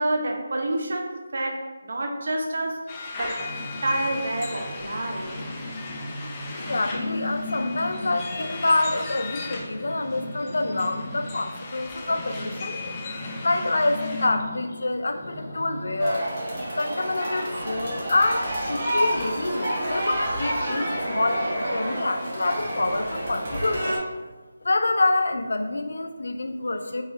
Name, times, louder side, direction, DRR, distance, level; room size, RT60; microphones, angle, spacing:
voice 1, 0.0-2.8 3.1-5.3, right 1 dB, 60° right, 2 dB, 0.8 m, -28 dB
sound 1, 2.9-14.3, left 4 dB, 20° left, 0.5 m, -38 dB
sound 2, 3.4-16.0, left 1 dB, 55° left, 1.1 m, -37 dB
voice 2, 6.5-12.8 13.4-16.3 16.7-24.0 24.6-27.0, left 2 dB, 70° left, 7 dB, 0.4 m, -26 dB
sound 3, 16.0-24.0, right 1 dB, 35° right, 1.4 m, -28 dB
4.7 x 3.5 x 3.1 m, 1.3 s
figure-of-eight pair, 160°, 0 cm